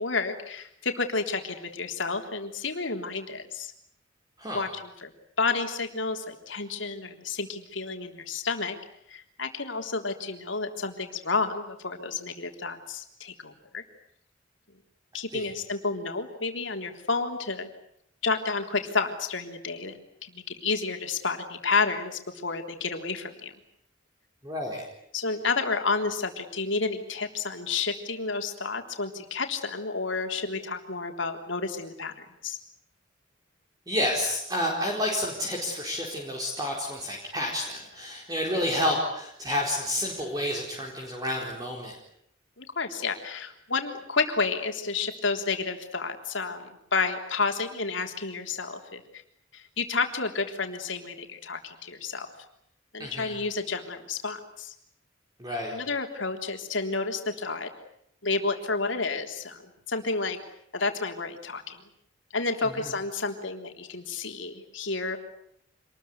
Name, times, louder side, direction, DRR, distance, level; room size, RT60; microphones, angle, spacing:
voice 1, 0.0-3.7 4.5-5.1 5.4-8.8 9.1-13.8 15.1-17.7 18.2-19.9 20.2-23.5 25.1-32.6 42.6-49.2 49.5-52.3 52.9-54.7 55.7-57.7 58.2-60.4 60.7-61.8 62.3-65.2, left 4 dB, 75° left, 5 dB, 3.5 m, -30 dB
voice 2, 24.4-24.8 33.9-41.9 53.0-53.3 55.4-55.7 62.8-62.9, left 1 dB, 20° right, -1 dB, 4.5 m, -30 dB
27.0 x 21.0 x 9.6 m, 0.73 s
head